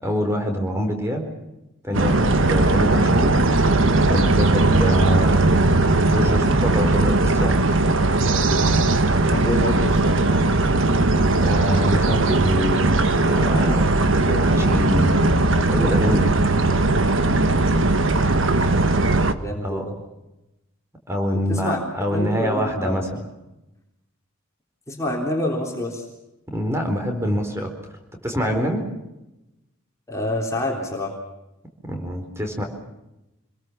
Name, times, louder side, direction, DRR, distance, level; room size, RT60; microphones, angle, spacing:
voice 1, 0.0-1.2 1.8-3.4 4.1-5.5 6.1-7.7 11.4-13.8 14.1-15.2 15.7-16.4 19.6-19.9 21.1-23.2 26.5-27.9 28.2-28.8 31.9-32.6, equal, 10° right, 4 dB, 4.3 m, -25 dB
sound 1, 1.9-19.3, right 2 dB, 60° right, 1.4 m, -18 dB
voice 2, 9.3-10.2 19.4-20.0 21.5-21.8 22.1-23.0 24.9-26.0 30.1-31.1, left 1 dB, 15° left, -1 dB, 3.5 m, -27 dB
27.5 x 21.5 x 7.2 m, 0.94 s
head